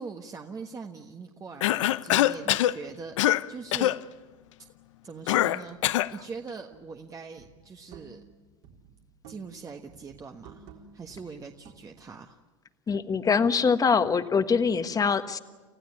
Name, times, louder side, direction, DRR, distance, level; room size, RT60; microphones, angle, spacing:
voice 1, 0.0-3.9 5.0-8.2 9.3-12.4, right 4 dB, 20° right, 4 dB, 1.4 m, -42 dB
Cough, 1.6-2.8 3.2-3.4 3.7-4.0 5.3-6.1, left 14 dB, 75° left, 0.7 m, -23 dB
sound 1, 6.7-7.0 7.4-8.4 8.6-9.6 9.9-12.1, right 6 dB, 60° right, 3.9 m, -52 dB
voice 2, 12.9-15.4, left 5 dB, 20° left, 10 dB, 1.4 m, -24 dB
30.0 x 15.0 x 9.8 m, 1.3 s
hypercardioid pair, 95°, 16 cm